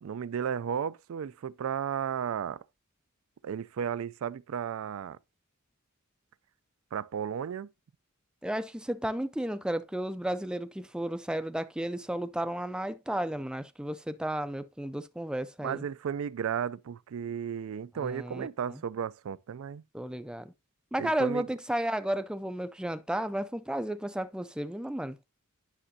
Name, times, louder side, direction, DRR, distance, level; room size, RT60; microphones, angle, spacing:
voice 1, 0.0-2.6 3.4-5.2 6.9-7.7 15.6-19.8 21.0-21.5, right 8 dB, 70° right, 0.3 m, -34 dB
voice 2, 8.4-15.9 18.0-18.8 19.9-20.5 20.9-25.2, right 1 dB, 5° right, 0.4 m, -33 dB
10.0 x 6.1 x 2.7 m
head